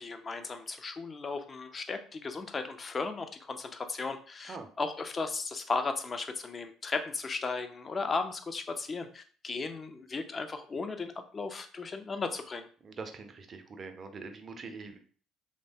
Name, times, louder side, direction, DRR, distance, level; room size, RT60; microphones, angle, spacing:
voice 1, 0.0-12.7, left 4 dB, 35° left, 7 dB, 0.4 m, -36 dB
voice 2, 12.8-15.0, right 4 dB, 40° right, 6 dB, 0.5 m, -43 dB
3.1 x 2.1 x 2.7 m, 0.43 s
hypercardioid pair, 55°, 0 cm